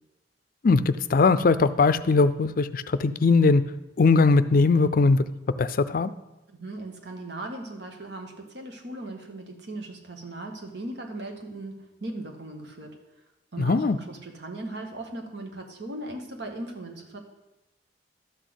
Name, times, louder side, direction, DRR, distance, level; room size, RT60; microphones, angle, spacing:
voice 1, 0.6-3.6 4.0-5.2 5.6-6.1 13.6-14.0, left 4 dB, 55° left, 14 dB, 0.5 m, -20 dB
voice 2, 6.5-13.0 13.5-17.2, right 2 dB, 85° right, 3 dB, 1.7 m, -38 dB
12.5 x 4.1 x 8.0 m, 0.99 s
head